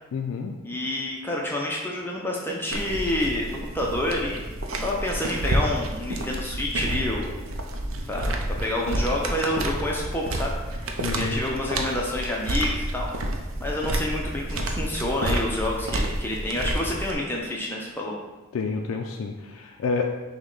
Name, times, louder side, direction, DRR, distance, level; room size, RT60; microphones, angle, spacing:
voice 1, 0.1-0.6 7.9-8.0 11.0-11.4 18.5-20.1, left 4 dB, 85° left, 2 dB, 0.3 m, -29 dB
voice 2, 0.6-4.4 4.8-7.3 8.1-10.9 11.2-13.1 13.6-18.1, left 1 dB, 10° left, -2 dB, 0.4 m, -28 dB
sound 1, 2.7-17.1, right 1 dB, 80° right, 0.5 m, -29 dB
6.0 x 2.2 x 3.8 m, 1.2 s
head